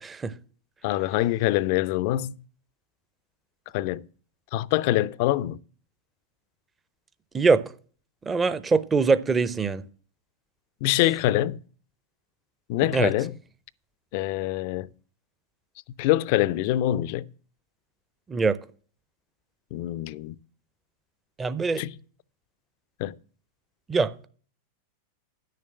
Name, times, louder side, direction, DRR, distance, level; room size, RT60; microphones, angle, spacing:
voice 1, 0.0-0.3 7.3-7.6 8.3-9.8 11.0-11.1 12.9-13.1 18.3-18.6 21.4-21.8 23.9-24.1, right 4 dB, 15° right, 0.7 m, -23 dB
voice 2, 0.8-2.3 3.7-4.0 4.5-5.6 10.8-11.6 12.7-13.3 14.1-14.9 16.0-17.2 19.7-20.4 21.8-21.9 23.0-23.1, left 15 dB, 45° left, 0.4 m, -24 dB
10.5 x 6.6 x 7.7 m
figure-of-eight pair, 90°, 0 cm